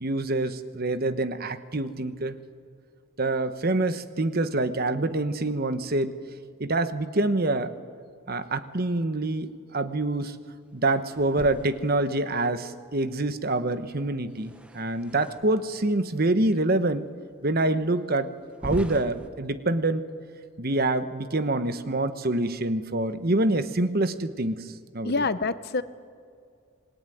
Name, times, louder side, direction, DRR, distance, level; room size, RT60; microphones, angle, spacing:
voice 1, 0.0-2.4 3.2-6.1 6.6-7.7 8.3-10.4 10.7-17.1 17.4-18.3 18.6-20.0 20.6-25.1, right 2 dB, 45° right, 11 dB, 1.1 m, -26 dB
sound 1, 11.1-12.5 14.3-15.8 16.5-16.6 17.3-17.4 18.5-19.3, equal, 5° right, 0.9 m, -40 dB
voice 2, 25.0-25.8, left 3 dB, 50° left, 13 dB, 0.8 m, -26 dB
26.5 x 21.5 x 9.3 m, 2.3 s
head